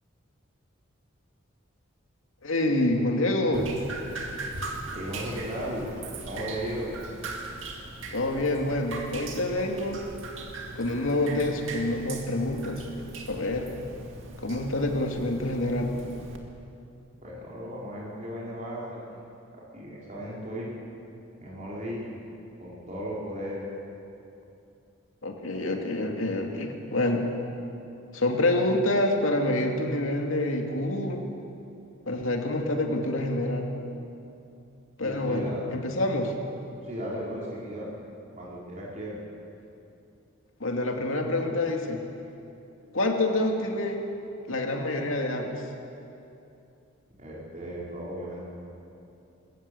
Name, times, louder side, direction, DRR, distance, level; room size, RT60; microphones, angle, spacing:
voice 1, 2.4-3.7 8.1-10.0 10.7-12.8 13.1-13.7 14.4-15.9 25.2-27.3 28.1-31.2 32.1-33.7 35.0-36.3 40.6-42.0 42.9-44.0 44.5-45.6, left 1 dB, 80° left, 2 dB, 2.4 m, -27 dB
Drip, 3.5-16.4, right 2 dB, 70° right, 2.2 m, -39 dB
voice 2, 4.9-5.8 6.2-6.9 17.2-19.3 19.5-20.7 21.4-22.0 22.6-23.7 35.0-35.6 36.8-37.9 38.4-39.1 47.2-48.4, equal, 35° right, -6 dB, 4.7 m, -36 dB
21.5 x 15.0 x 8.5 m, 2.8 s
head